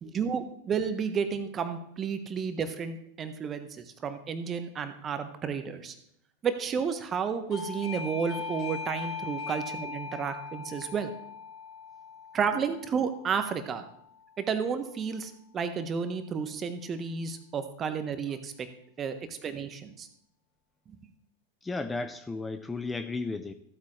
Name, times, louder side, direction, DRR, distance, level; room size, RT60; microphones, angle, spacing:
voice 1, 0.0-5.9 6.4-11.1 12.3-13.8 14.4-18.7 19.0-20.1, right 6 dB, 25° right, 9 dB, 1.2 m, -32 dB
Doorbell, 7.5-14.0, left 5 dB, 45° left, 3.3 m, -40 dB
voice 2, 21.6-23.5, left 3 dB, 10° left, 9 dB, 0.5 m, -34 dB
14.5 x 8.4 x 3.2 m, 0.70 s
figure-of-eight pair, 90°, 0 cm